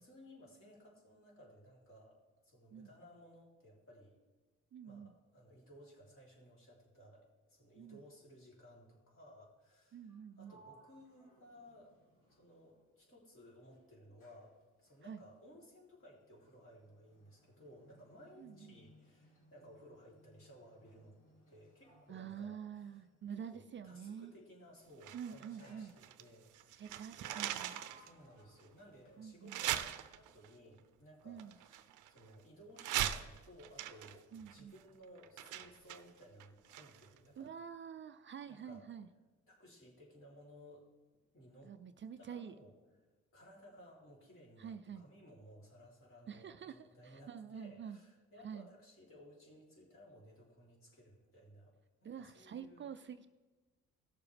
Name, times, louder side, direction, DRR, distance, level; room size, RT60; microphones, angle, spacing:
voice 1, 0.0-4.2 4.8-11.9 12.3-21.2 21.5-23.0 23.4-26.9 27.3-27.6 28.0-37.5 38.5-38.8 39.5-40.9 41.3-41.7 42.2-42.7 43.3-51.8 52.0-52.9, equal, 45° left, -3 dB, 3.3 m, -59 dB
voice 2, 4.7-5.1 7.8-8.0 9.9-10.6 15.0-15.2 18.4-18.8 22.1-24.3 25.1-25.9 26.8-27.8 29.2-29.6 31.2-31.6 34.3-34.8 37.4-39.1 41.6-42.6 44.6-45.0 46.3-48.0 48.4-48.7 52.0-53.3, right 7 dB, 40° right, 11 dB, 0.4 m, -47 dB
Sliding door, 10.1-13.3 13.6-23.8 24.6-25.0 25.6-26.5 27.1-29.6, equal, 85° left, 3.2 m, -66 dB
sound 1, 25.0-26.3 26.5-28.1 28.6-28.7 29.5-30.5 31.4-32.3 32.8-37.2 37.4-37.5, right 12 dB, 80° right, 0.6 m, -40 dB
16.5 x 7.0 x 3.4 m, 1.2 s
cardioid pair, 90°, 30 cm